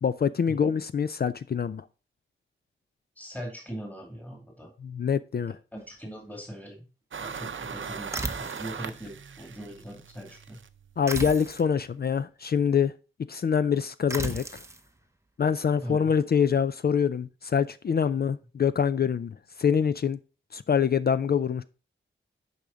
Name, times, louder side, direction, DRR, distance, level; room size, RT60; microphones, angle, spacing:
voice 1, 0.0-1.8 4.8-5.5 11.0-12.9 13.3-14.6 15.4-20.2 20.5-21.6, left 7 dB, 50° left, 0.4 m, -25 dB
voice 2, 3.2-4.7 5.7-6.9 7.2-10.6 15.8-16.1, equal, 5° left, 2.5 m, -40 dB
sound 1, 7.1-11.6, right 6 dB, 65° right, 0.6 m, -40 dB
sound 2, 8.1-8.8 11.1-11.7 14.1-14.8, right 2 dB, 15° right, 0.7 m, -34 dB
10.0 x 5.0 x 3.8 m
wide cardioid pair, 130°, 21 cm